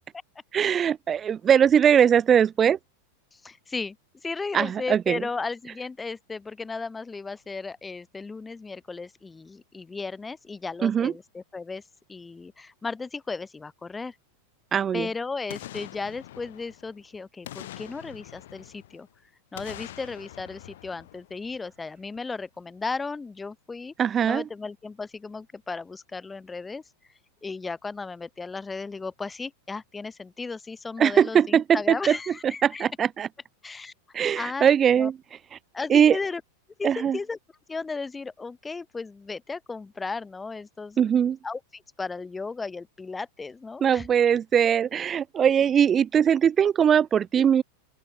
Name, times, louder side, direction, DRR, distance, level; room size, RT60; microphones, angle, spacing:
voice 1, 0.5-2.8 4.5-5.2 10.8-11.1 14.7-15.1 24.0-24.4 31.0-32.2 32.6-33.3 34.1-35.2 35.9-36.2 36.8-37.2 41.0-41.4 43.8-47.6, right 8 dB, 25° right, 0.3 m, -21 dB
voice 2, 3.3-4.0 4.2-11.8 12.1-14.2 14.9-19.1 19.5-23.9 24.2-26.8 27.4-32.9 33.6-33.9 34.4-34.7 35.0-35.1 35.7-36.4 36.8-37.4 37.7-44.1, left 4 dB, 10° left, 1.7 m, -35 dB
Boom, 15.5-17.0 17.4-19.1 19.5-21.8 22.2-22.3, left 14 dB, 55° left, 5.1 m, -44 dB
open air
figure-of-eight pair, 90°, 0 cm